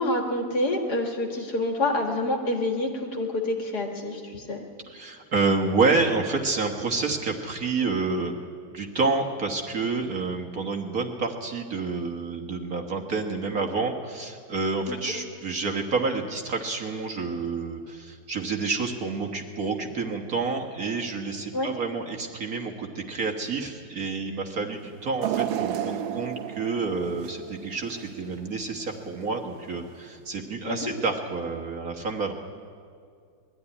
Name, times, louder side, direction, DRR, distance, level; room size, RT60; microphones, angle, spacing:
voice 1, 0.0-4.6 14.9-15.0 21.5-21.7 30.6-30.9, left 1 dB, 55° left, 1 dB, 2.4 m, -27 dB
voice 2, 4.9-8.3 8.7-32.3, right 4 dB, 50° right, 1 dB, 1.7 m, -28 dB
sound 1, 25.2-28.4 28.8-28.9 30.0-30.1, right 10 dB, 80° right, 1.6 m, -31 dB
20.5 x 13.0 x 9.8 m, 2.2 s
omnidirectional pair, 2.2 m